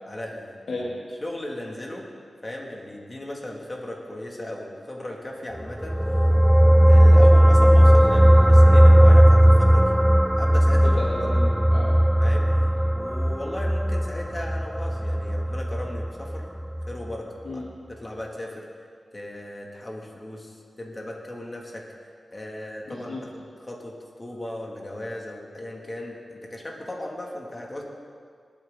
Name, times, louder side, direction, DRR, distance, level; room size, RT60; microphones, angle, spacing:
voice 1, 0.1-0.8 1.2-2.1 2.4-6.0 6.9-10.0 10.4-11.0 12.2-12.5 12.9-16.5 16.9-17.6 17.9-18.7 19.1-21.9 22.3-27.8, left 1 dB, 30° left, -1 dB, 2.6 m, -36 dB
sound 1, 5.7-16.4 16.8-16.9, equal, 5° right, 0.4 m, -16 dB
voice 2, 10.8-12.0 17.4-17.7 22.9-23.3, left 2 dB, 90° left, -4 dB, 1.6 m, -33 dB
20.0 x 9.4 x 4.0 m, 2.1 s
cardioid pair, 55°, 0 cm